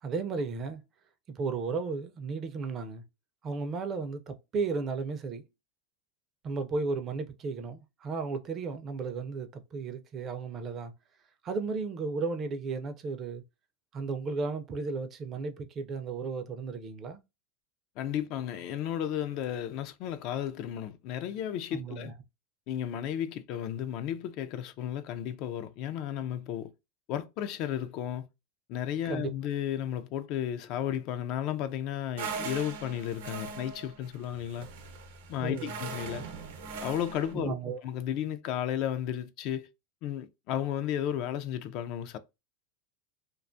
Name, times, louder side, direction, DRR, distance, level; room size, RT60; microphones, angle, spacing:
voice 1, 0.0-0.8 1.3-3.0 3.4-5.4 6.4-10.9 11.4-13.4 13.9-17.2 21.7-22.1 29.1-29.3 35.4-35.8 37.3-37.8, right 4 dB, 30° right, 0.4 m, -34 dB
voice 2, 18.0-22.1 22.7-26.7 27.1-28.3 28.7-34.7 35.3-36.3 36.8-37.6 37.8-39.7 40.0-42.2, left 10 dB, 50° left, 0.3 m, -33 dB
sound 1, 32.2-37.3, right 5 dB, 80° right, 0.6 m, -40 dB
2.4 x 2.2 x 2.5 m
supercardioid pair, 140°, 0 cm